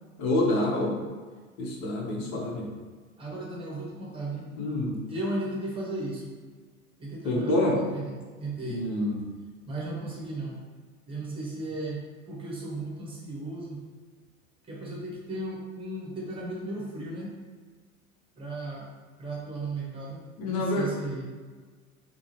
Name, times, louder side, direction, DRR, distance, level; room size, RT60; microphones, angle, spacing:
voice 1, 0.2-1.0 1.6-2.7 4.6-5.0 7.2-7.8 8.6-9.3 20.4-20.9, left 1 dB, 40° left, -2 dB, 0.8 m, -27 dB
voice 2, 3.2-4.5 5.1-6.3 7.0-8.8 9.7-10.6 11.1-13.8 14.6-17.3 18.4-18.9 19.2-21.2, right 2 dB, 10° right, -4 dB, 0.9 m, -35 dB
3.7 x 2.0 x 2.9 m, 1.5 s
figure-of-eight pair, 85°, 44 cm